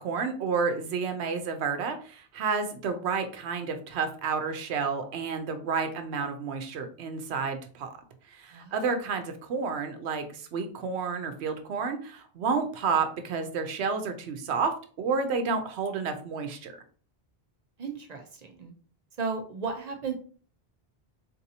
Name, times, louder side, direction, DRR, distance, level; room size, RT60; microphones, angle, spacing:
voice 1, 0.0-7.9 8.3-14.7 15.0-16.7, right 5 dB, 80° right, 7 dB, 0.9 m, -30 dB
voice 2, 8.5-8.9 17.8-18.7 19.2-20.1, right 5 dB, 45° right, 3 dB, 0.6 m, -35 dB
3.8 x 2.7 x 2.7 m, 0.42 s
omnidirectional pair, 1.1 m